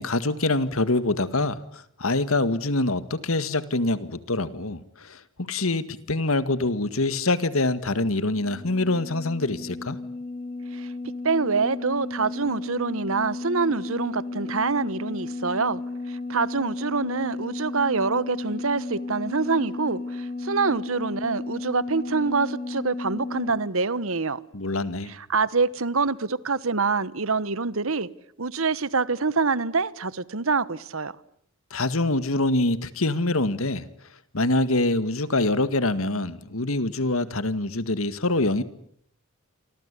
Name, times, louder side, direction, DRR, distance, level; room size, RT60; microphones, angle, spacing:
voice 1, 0.0-10.0 24.5-25.1 31.7-33.8 34.3-38.6, left 2 dB, 75° left, 1.9 m, -25 dB
sound 1, 7.3-23.5, left 2 dB, 45° left, 4.7 m, -34 dB
voice 2, 11.2-15.8 16.1-24.4 25.1-28.1 28.4-31.1, right 4 dB, 75° right, 1.2 m, -26 dB
29.0 x 24.5 x 8.4 m
head